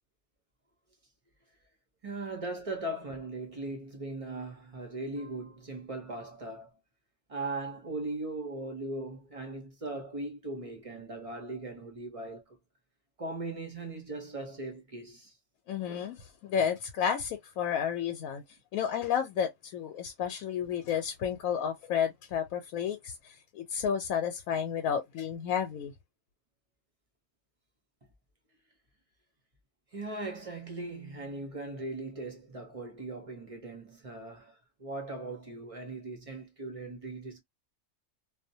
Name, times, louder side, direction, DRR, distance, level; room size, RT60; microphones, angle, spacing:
voice 1, 2.0-6.7 7.3-12.6 13.2-15.3 29.9-37.4, right 2 dB, 40° right, 0.5 m, -39 dB
voice 2, 15.7-18.4 18.7-25.9, left 8 dB, 80° left, 1.0 m, -31 dB
2.4 x 2.0 x 2.6 m
omnidirectional pair, 1.5 m